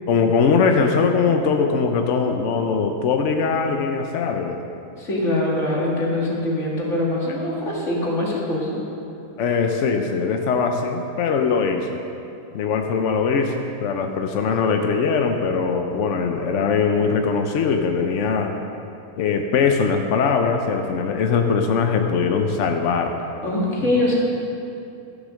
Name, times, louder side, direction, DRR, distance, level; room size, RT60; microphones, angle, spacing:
voice 1, 0.1-4.6 9.4-12.0 12.5-18.6 19.2-23.1, left 5 dB, 65° left, 4 dB, 0.7 m, -21 dB
voice 2, 5.0-8.8 23.4-24.1, left 1 dB, 40° left, -5 dB, 2.5 m, -23 dB
13.0 x 7.4 x 6.4 m, 2.8 s
omnidirectional pair, 2.0 m